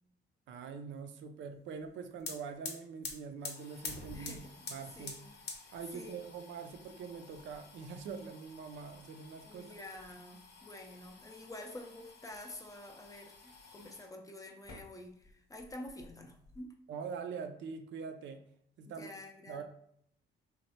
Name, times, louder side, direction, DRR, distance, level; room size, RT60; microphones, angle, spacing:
voice 1, 0.5-4.4 4.7-5.2 5.7-9.7 13.8-13.9 16.9-18.4 18.8-19.1 19.5-19.6, right 6 dB, 70° right, 6 dB, 0.4 m, -44 dB
sound 1, 1.9-2.0 2.2-14.1 14.6-15.3 15.6-16.6, left 4 dB, 60° left, 0.7 m, -49 dB
voice 2, 4.1-4.6 5.0-5.3 5.6-6.2 9.4-16.7 18.8-19.6, left 1 dB, 15° left, 3 dB, 0.4 m, -49 dB
3.1 x 2.0 x 2.7 m, 0.68 s
cardioid pair, 90°, 20 cm